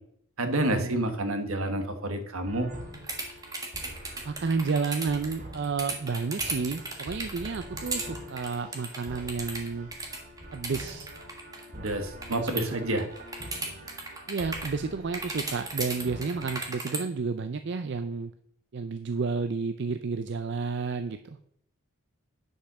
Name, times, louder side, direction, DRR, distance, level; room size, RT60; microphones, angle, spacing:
voice 1, 0.4-2.7 11.7-13.1, right 1 dB, 75° right, 7 dB, 1.4 m, -29 dB
sound 1, 2.4-16.6, equal, 35° right, 2.2 m, -45 dB
sound 2, 2.9-12.7 13.0-14.8 15.1-17.0, right 3 dB, 15° right, 1.6 m, -35 dB
voice 2, 4.2-9.9 10.5-11.1 12.4-12.8 14.3-18.3 18.7-21.4, right 4 dB, 55° right, 9 dB, 0.4 m, -31 dB
10.0 x 5.4 x 6.0 m, 0.70 s
head